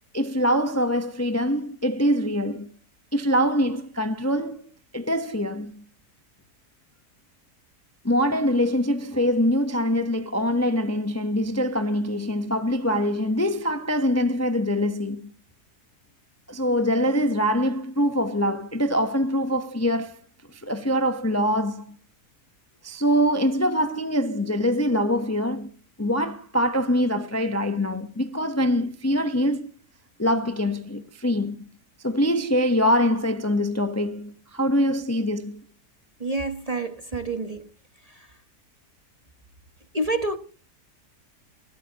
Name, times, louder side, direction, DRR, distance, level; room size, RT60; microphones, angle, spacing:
voice 1, 0.1-2.7 3.1-4.7 4.9-5.8 8.0-15.3 16.5-20.2 20.5-22.0 22.8-25.7 26.0-29.7 30.2-31.6 32.0-35.6, equal, 15° left, 0.8 m, -24 dB
voice 2, 36.2-37.7 39.9-40.4, right 2 dB, 25° right, 1.1 m, -28 dB
20.5 x 14.5 x 2.9 m
omnidirectional pair, 1.7 m